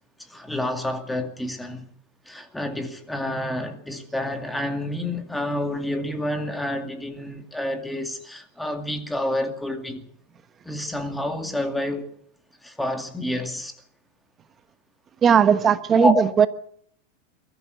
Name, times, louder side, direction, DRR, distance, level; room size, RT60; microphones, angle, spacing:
voice 1, 0.2-1.8 2.3-10.1 10.6-12.1 12.6-13.8 15.9-16.3, left 1 dB, 5° left, 2.4 m, -28 dB
voice 2, 15.2-16.5, right 7 dB, 25° right, 1.1 m, -17 dB
22.5 x 14.0 x 8.1 m
supercardioid pair, 140°, 0 cm